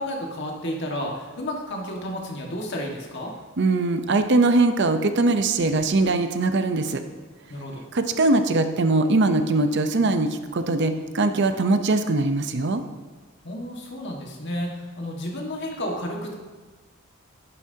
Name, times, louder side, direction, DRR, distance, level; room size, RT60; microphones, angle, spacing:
voice 1, 0.0-3.3 7.5-7.8 13.4-16.3, left 1 dB, 60° left, 0 dB, 1.7 m, -31 dB
voice 2, 3.6-7.0 7.9-12.8, right 2 dB, 55° right, 8 dB, 0.7 m, -21 dB
11.0 x 11.0 x 2.8 m, 1.3 s
head